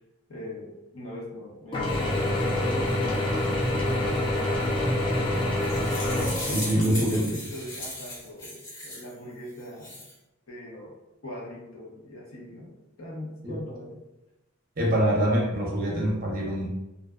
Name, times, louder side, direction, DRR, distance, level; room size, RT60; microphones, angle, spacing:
voice 1, 0.3-5.0 6.4-10.0 10.5-10.9 11.2-14.0, left 1 dB, 80° left, -4 dB, 0.8 m, -41 dB
Mechanisms / Drill, 1.7-7.2, left 1 dB, 25° left, 0.4 m, -26 dB
sound 1, 5.3-9.1 9.6-10.1, left 1 dB, 60° left, 1.2 m, -37 dB
voice 2, 6.4-7.4 13.4-13.6 14.8-16.7, right 1 dB, 40° right, -2 dB, 0.6 m, -25 dB
2.4 x 2.2 x 2.3 m, 0.97 s
head